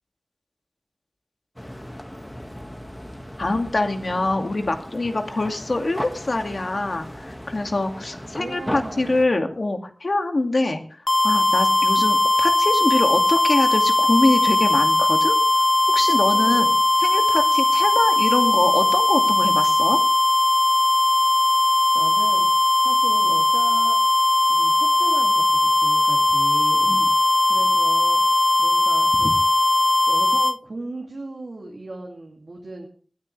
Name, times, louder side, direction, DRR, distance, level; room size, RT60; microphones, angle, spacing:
sound 1, 1.6-9.3, equal, 15° left, 1.8 m, -36 dB
voice 1, 3.4-10.8 11.2-15.4 15.9-16.7 17.0-20.0 26.9-27.0 29.2-29.3, left 2 dB, 75° left, 4 dB, 2.3 m, -24 dB
voice 2, 8.4-9.3 16.3-16.8 21.6-22.5 22.8-24.0 24.5-29.4 30.1-32.9, right 2 dB, 85° right, 0 dB, 2.6 m, -37 dB
sound 2, 11.1-30.6, left 2 dB, 55° left, 0.6 m, -19 dB
20.0 x 14.0 x 3.4 m, 0.43 s
wide cardioid pair, 50°, 0 cm